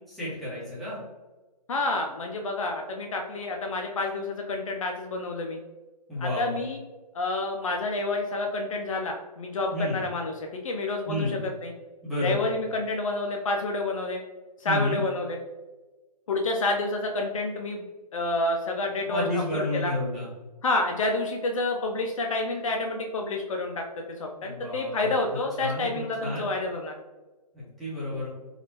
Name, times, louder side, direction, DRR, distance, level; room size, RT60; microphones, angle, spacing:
voice 1, 0.1-1.0 6.1-6.5 9.7-10.0 11.0-11.4 12.0-12.5 14.6-15.0 19.0-20.3 24.4-25.1 25.6-26.5 27.5-28.3, left 1 dB, ahead, -10 dB, 1.1 m, -31 dB
voice 2, 1.7-5.6 6.2-6.8 7.1-11.7 12.2-14.2 14.6-15.4 16.3-17.9 18.1-19.9 20.6-23.8 24.2-26.9, left 2 dB, 50° left, 2 dB, 0.5 m, -29 dB
4.1 x 2.4 x 2.8 m, 1.2 s
hypercardioid pair, 150°, 21 cm